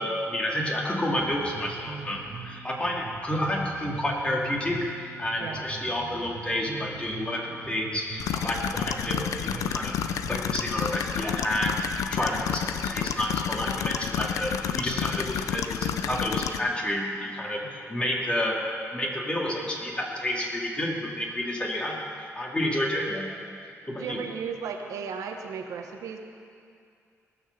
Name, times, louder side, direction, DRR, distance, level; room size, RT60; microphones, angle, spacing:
voice 1, 0.0-4.9 5.2-10.0 10.3-11.8 12.1-18.6 18.9-22.0 22.4-23.3 23.9-24.2, left 1 dB, 20° left, -2 dB, 2.6 m, -30 dB
Bass guitar, 1.2-10.8, right 5 dB, 65° right, 1.7 m, -42 dB
sound 1, 8.2-16.6, left 9 dB, 90° left, 0.5 m, -30 dB
voice 2, 24.0-26.2, right 6 dB, 90° right, 3 dB, 1.1 m, -35 dB
19.0 x 6.6 x 6.8 m, 2.4 s
cardioid pair, 85°, 6 cm